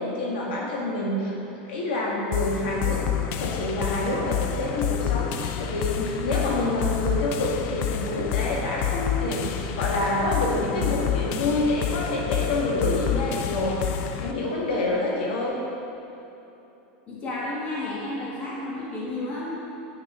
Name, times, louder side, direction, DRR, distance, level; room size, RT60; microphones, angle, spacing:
voice 1, 0.0-3.0 3.4-13.8 14.2-15.6, left 2 dB, 75° left, -3 dB, 1.6 m, -27 dB
sound 1, 2.3-14.3, left 9 dB, 40° left, 0.4 m, -28 dB
voice 2, 17.1-19.5, left 2 dB, 25° left, -6 dB, 1.4 m, -32 dB
8.7 x 5.5 x 3.7 m, 3.0 s
supercardioid pair, 160°, 5 cm